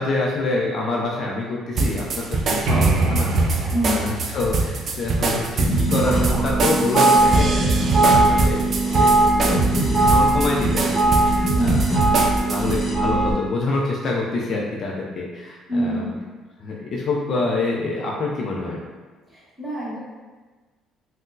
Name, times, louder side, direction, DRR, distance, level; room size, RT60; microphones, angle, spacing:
voice 1, 0.0-9.2 9.4-12.0 12.5-16.2 16.6-18.8, left 3 dB, 40° left, -3 dB, 0.4 m, -26 dB
sound 1, 1.8-12.8, right 3 dB, 35° right, 0.3 m, -24 dB
sound 2, 2.7-6.3, right 2 dB, 80° right, 0.6 m, -25 dB
voice 2, 3.7-4.1 11.6-11.8 15.7-16.1 19.3-20.0, equal, 5° right, -8 dB, 0.9 m, -25 dB
sound 3, 5.7-13.3, right 2 dB, 25° left, 1.1 m, -19 dB
4.0 x 2.0 x 2.6 m, 1.3 s
cardioid pair, 160°, 0 cm